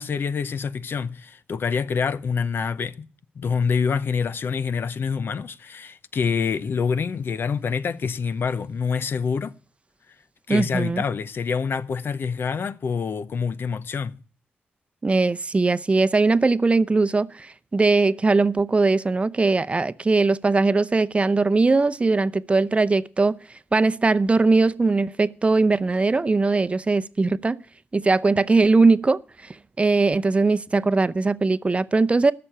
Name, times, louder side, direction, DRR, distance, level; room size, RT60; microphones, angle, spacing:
voice 1, 0.0-3.1 3.4-9.5 10.5-14.2, left 6 dB, 70° left, 0.7 m, -26 dB
voice 2, 10.5-11.0 15.0-23.4 23.7-27.6 27.9-29.2 29.8-32.3, right 3 dB, 30° right, 0.6 m, -20 dB
11.5 x 6.9 x 8.8 m
cardioid pair, 65°, 4 cm